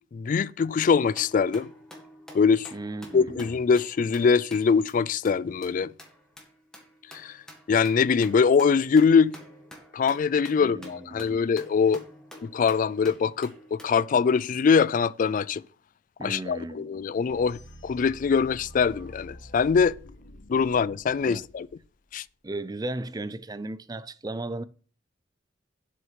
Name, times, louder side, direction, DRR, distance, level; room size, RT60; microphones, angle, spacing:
voice 1, 0.1-1.7 2.3-2.7 3.1-5.9 7.1-7.3 7.7-9.3 9.9-12.0 12.4-15.6 16.2-19.9 20.5-21.7 22.1-22.2, left 5 dB, 45° left, 0.3 m, -23 dB
sound 1, 1.2-4.9 5.3-5.4 5.6-5.7 6.0-13.9, equal, 5° left, 1.8 m, -49 dB
voice 2, 2.7-3.5 10.5-11.5 16.2-16.9 21.2-21.4 22.4-24.6, right 2 dB, 20° right, 0.5 m, -36 dB
sound 2, 17.3-22.2, equal, 65° left, 1.3 m, -47 dB
7.6 x 6.5 x 5.7 m
head